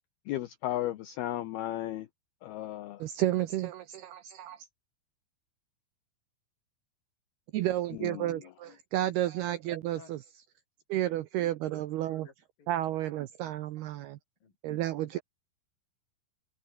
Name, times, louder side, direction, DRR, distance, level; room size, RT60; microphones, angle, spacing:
voice 1, 0.3-2.1 2.4-3.1 8.0-8.4, left 14 dB, 75° left, 2.5 m, -35 dB
voice 2, 3.0-4.7 7.5-10.2 10.9-12.3 12.7-14.2 14.6-15.2, right 14 dB, 75° right, 2.5 m, -31 dB
voice 3, 11.6-12.8 14.4-14.6 15.0-15.2, left 5 dB, 50° left, 6.0 m, -55 dB
omnidirectional pair, 5.5 m